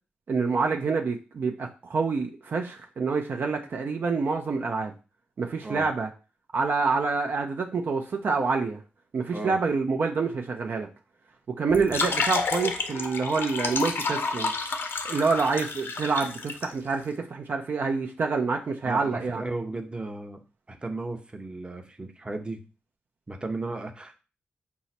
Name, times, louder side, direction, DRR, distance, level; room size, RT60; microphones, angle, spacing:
voice 1, 0.3-4.9 5.4-6.1 6.5-8.8 9.1-10.9 11.5-14.5 15.0-19.4, right 4 dB, 60° right, 2 dB, 0.6 m, -27 dB
sound 1, 11.7-16.6, left 4 dB, 70° left, 0.6 m, -30 dB
voice 2, 18.8-20.4 20.7-22.6 23.3-24.2, right 2 dB, 25° right, 5 dB, 0.8 m, -35 dB
4.6 x 2.0 x 4.2 m, 0.32 s
supercardioid pair, 50°, 4 cm